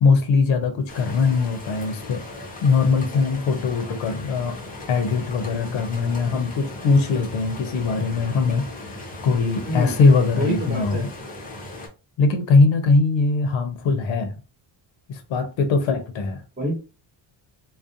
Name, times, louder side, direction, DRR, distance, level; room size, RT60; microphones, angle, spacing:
voice 1, 0.0-2.2 2.6-4.6 4.9-8.7 9.2-11.1 12.2-14.3 15.1-16.4, left 4 dB, 70° left, 0.6 m, -21 dB
sound 1, 0.9-11.9, left 2 dB, 20° left, 0.6 m, -37 dB
voice 2, 9.6-10.0 10.4-11.0 16.6-16.8, equal, 20° right, 1.0 m, -27 dB
2.4 x 2.1 x 2.6 m
cardioid pair, 125°, 49 cm